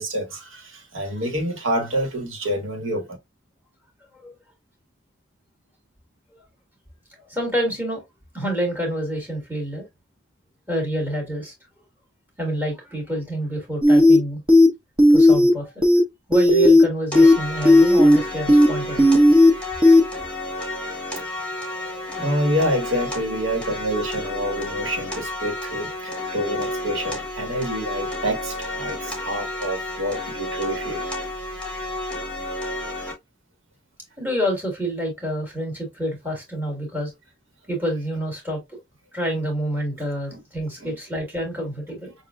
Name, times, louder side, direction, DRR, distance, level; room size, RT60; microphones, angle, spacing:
voice 1, 0.0-3.0 22.2-31.0 40.3-40.4 40.8-41.0, equal, 90° right, 1.6 m, -27 dB
voice 2, 7.3-8.0 8.3-9.9 10.7-11.5 12.4-14.4 15.1-15.8 16.3-19.2 21.7-22.2 34.2-37.1 37.7-38.8 39.1-42.1, equal, 10° right, 1.8 m, -28 dB
sound 1, 13.8-14.2 14.5-14.7 15.0-15.5 15.8-16.0 16.3-16.8 17.1-17.3 17.6-18.2 18.5-18.7 19.0-19.5 19.8-20.0, left 1 dB, 25° right, 1.0 m, -12 dB
sound 2, 17.1-33.1, left 1 dB, 5° left, 1.4 m, -31 dB
6.2 x 2.7 x 2.4 m
head